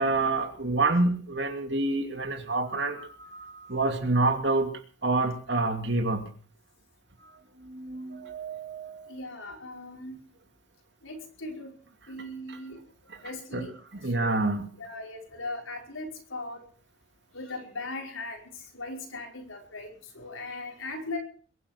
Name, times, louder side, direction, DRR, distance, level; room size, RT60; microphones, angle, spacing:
voice 1, 0.0-4.7 5.0-6.2 7.6-9.1 12.5-12.6 13.5-13.7 14.0-14.7, right 2 dB, 60° right, 6 dB, 2.7 m, -27 dB
voice 2, 9.1-10.2 11.0-11.7 12.1-12.8 13.2-13.7 14.1-14.4 14.8-16.6 17.3-21.2, left 2 dB, 85° left, 2 dB, 5.3 m, -39 dB
22.0 x 9.7 x 6.5 m, 0.43 s
head